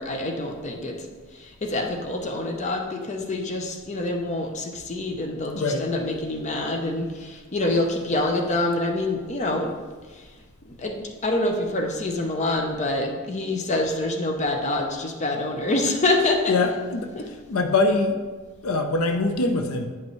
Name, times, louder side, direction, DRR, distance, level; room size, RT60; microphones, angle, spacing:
voice 1, 0.0-9.7 10.1-10.3 10.6-16.5 17.2-17.3, left 2 dB, 35° left, 3 dB, 0.7 m, -26 dB
voice 2, 5.5-5.9 16.5-18.2 18.6-19.9, left 3 dB, 80° left, 6 dB, 0.6 m, -23 dB
9.2 x 5.3 x 3.1 m, 1.4 s
head